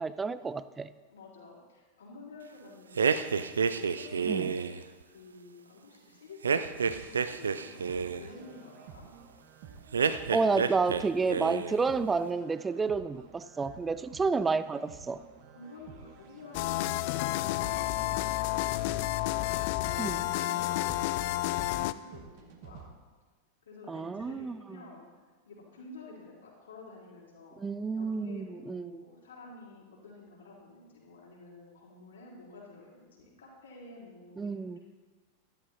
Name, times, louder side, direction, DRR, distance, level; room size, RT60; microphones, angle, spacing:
voice 1, 0.0-0.9 4.3-4.5 10.3-15.2 20.0-20.2 23.9-24.8 27.6-29.1 34.4-34.8, right 4 dB, 15° right, 15 dB, 0.5 m, -30 dB
voice 2, 1.1-4.7 5.0-6.6 7.0-9.1 13.8-14.1 15.5-19.6 20.0-22.9 23.6-25.0 25.4-27.6 27.9-34.8, left 3 dB, 65° left, -5 dB, 4.6 m, -50 dB
sound 1, 3.0-4.8 6.4-8.3 9.9-11.0 11.3-11.8, right 6 dB, 70° right, 0.6 m, -29 dB
sound 2, 6.9-22.9, right 7 dB, 45° right, 1.4 m, -52 dB
sound 3, 16.5-21.9, left 16 dB, 50° left, 0.4 m, -30 dB
13.5 x 12.5 x 4.2 m, 1.4 s
figure-of-eight pair, 90°, 0 cm